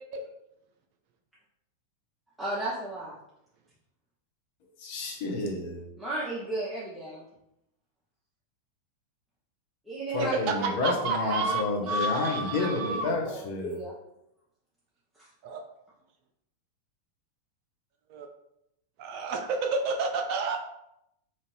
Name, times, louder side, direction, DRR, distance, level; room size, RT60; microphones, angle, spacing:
voice 1, 2.4-3.2 6.0-7.2 9.9-13.9 15.2-15.3, right 1 dB, 5° right, -8 dB, 0.6 m, -36 dB
voice 2, 4.8-5.9 10.1-13.8, left 3 dB, 50° left, 1 dB, 0.7 m, -30 dB
voice 3, 10.8-13.1 15.4-15.6 18.1-18.3 19.0-20.6, right 3 dB, 45° right, 3 dB, 0.4 m, -30 dB
2.8 x 2.5 x 3.0 m, 0.82 s
figure-of-eight pair, 90°, 0 cm